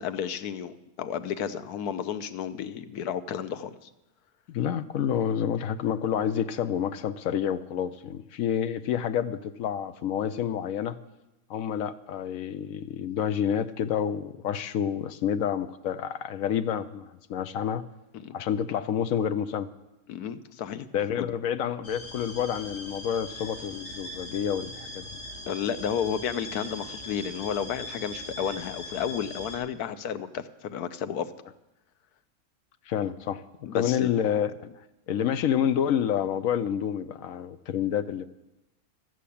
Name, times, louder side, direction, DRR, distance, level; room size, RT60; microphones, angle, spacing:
voice 1, 0.0-3.7 18.1-18.4 20.1-20.9 21.2-21.3 25.5-31.3 33.7-34.1, left 8 dB, 90° left, 11 dB, 1.3 m, -32 dB
voice 2, 4.5-11.0 11.5-17.8 18.3-19.7 20.9-25.1 32.9-33.4 33.7-34.5 35.1-38.3, left 9 dB, 70° left, 13 dB, 1.0 m, -28 dB
sound 1, 21.8-29.6, left 1 dB, 45° left, 2.5 m, -41 dB
13.0 x 7.6 x 8.4 m, 0.96 s
omnidirectional pair, 1.6 m